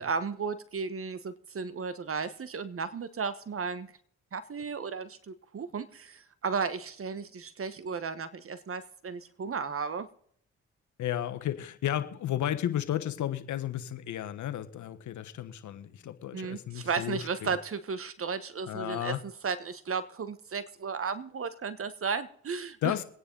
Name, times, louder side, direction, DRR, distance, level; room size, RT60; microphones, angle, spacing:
voice 1, 0.0-3.9 4.3-10.1 16.3-19.2 19.4-22.9, right 5 dB, 50° right, 1.2 m, -34 dB
voice 2, 11.0-17.6 18.7-19.2 22.8-23.0, left 11 dB, 75° left, 1.2 m, -33 dB
23.0 x 9.6 x 3.9 m
supercardioid pair, 55°, 30 cm